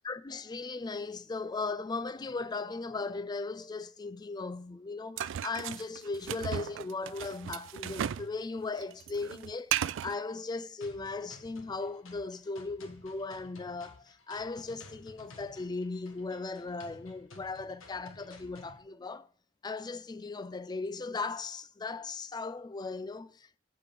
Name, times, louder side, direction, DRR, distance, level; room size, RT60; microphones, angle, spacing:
voice 1, 0.0-9.7 10.0-19.3 19.6-23.6, left 3 dB, 20° left, 0.3 m, -37 dB
sound 1, 5.2-8.3 8.6-10.2, right 10 dB, 65° right, 0.3 m, -35 dB
sound 2, 10.8-18.8, left 2 dB, 75° left, 1.2 m, -54 dB
7.7 x 4.8 x 5.0 m
head